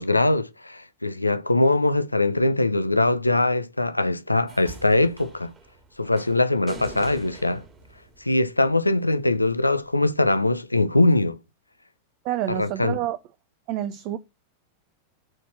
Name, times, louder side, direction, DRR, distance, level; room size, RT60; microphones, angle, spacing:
voice 1, 0.0-5.5 6.0-7.6 8.2-11.4 12.5-13.0, left 2 dB, 85° left, 0.6 m, -22 dB
sound 1, 4.5-8.8 10.0-10.1, right 2 dB, 30° right, 2.2 m, -43 dB
voice 2, 12.2-13.2 13.7-14.2, right 13 dB, 45° right, 0.7 m, -28 dB
8.8 x 4.3 x 5.8 m
figure-of-eight pair, 90°, 0 cm